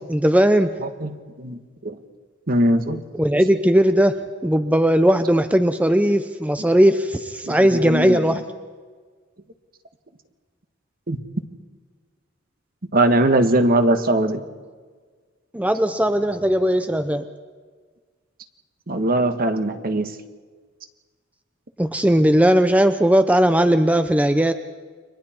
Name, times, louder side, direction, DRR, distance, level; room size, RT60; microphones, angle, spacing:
voice 1, 0.0-0.7 3.2-8.4 15.5-17.2 21.8-24.5, equal, 5° right, 9 dB, 0.7 m, -18 dB
voice 2, 0.8-2.0 2.5-3.0 7.5-8.4 11.1-11.2 12.9-14.4 18.9-20.1, right 1 dB, 50° right, 8 dB, 1.5 m, -21 dB
30.0 x 24.0 x 4.5 m, 1.5 s
head